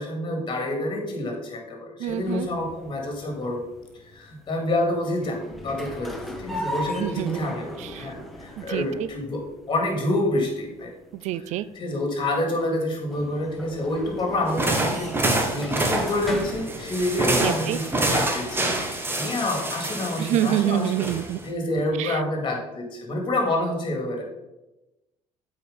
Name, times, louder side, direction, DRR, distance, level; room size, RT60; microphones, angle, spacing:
voice 1, 0.0-3.7 4.0-10.9 11.3-21.0 21.4-24.2, left 1 dB, 40° left, 2 dB, 2.5 m, -28 dB
voice 2, 2.0-2.5 7.0-8.1 8.6-9.1 11.2-11.7 17.4-17.8 20.2-21.4 22.0-22.2, right 12 dB, 65° right, 16 dB, 0.4 m, -27 dB
sound 1, 2.1-19.1, left 1 dB, ahead, 1.2 m, -39 dB
sound 2, 14.5-21.5, right 2 dB, 20° right, 1.3 m, -27 dB
7.7 x 5.0 x 5.2 m, 0.98 s
cardioid pair, 100°, 13 cm